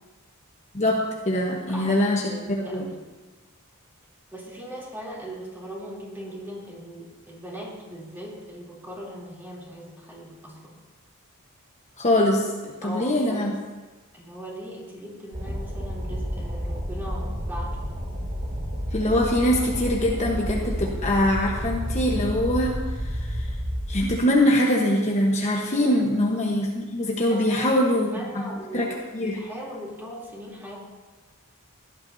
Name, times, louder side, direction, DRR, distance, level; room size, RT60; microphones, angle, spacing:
voice 1, 0.7-2.8 12.0-13.6 18.9-23.5 23.9-28.1 28.3-29.4, left 1 dB, 30° left, -2 dB, 1.2 m, -23 dB
voice 2, 1.3-3.0 4.3-10.8 12.8-13.5 14.1-17.7 25.8-26.1 27.2-28.9 29.2-30.8, equal, 10° right, -6 dB, 3.2 m, -39 dB
sound 1, 15.3-24.2, equal, 40° right, 2.1 m, -30 dB
17.0 x 11.5 x 2.8 m, 1.3 s
head